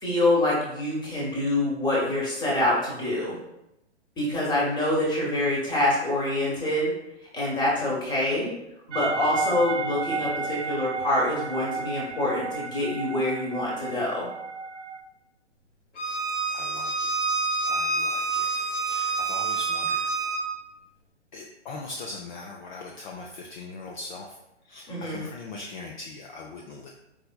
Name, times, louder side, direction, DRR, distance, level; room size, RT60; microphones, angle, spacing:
voice 1, 0.0-3.4 4.2-6.9 7.3-8.5 8.9-14.3 24.9-25.2, left 1 dB, 10° left, -5 dB, 1.0 m, -26 dB
sound 1, 8.9-15.0, right 5 dB, 85° right, 0.6 m, -33 dB
Bowed string instrument, 16.0-20.4, right 4 dB, 85° left, 0.9 m, -27 dB
voice 2, 16.5-17.1 17.7-20.0 21.3-24.4 24.6-26.9, left 3 dB, 40° left, -1 dB, 0.5 m, -40 dB
4.6 x 3.3 x 2.2 m, 0.88 s
hypercardioid pair, 130°, 35 cm